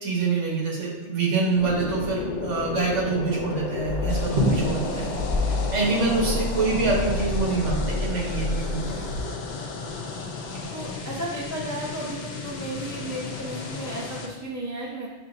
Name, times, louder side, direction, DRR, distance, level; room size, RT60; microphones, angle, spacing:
voice 1, 0.0-5.2 5.7-9.1 10.6-10.7, right 3 dB, 80° right, -2 dB, 1.4 m, -26 dB
sound 1, 1.6-14.3, left 4 dB, 85° left, 0.9 m, -35 dB
sound 2, 3.8-9.2, left 1 dB, 55° right, 1.1 m, -28 dB
sound 3, 4.1-14.3, left 4 dB, 55° left, 0.5 m, -36 dB
voice 2, 4.9-5.2 10.7-15.1, right 1 dB, 25° right, -5 dB, 0.4 m, -34 dB
7.2 x 2.8 x 2.5 m, 1.2 s
omnidirectional pair, 1.2 m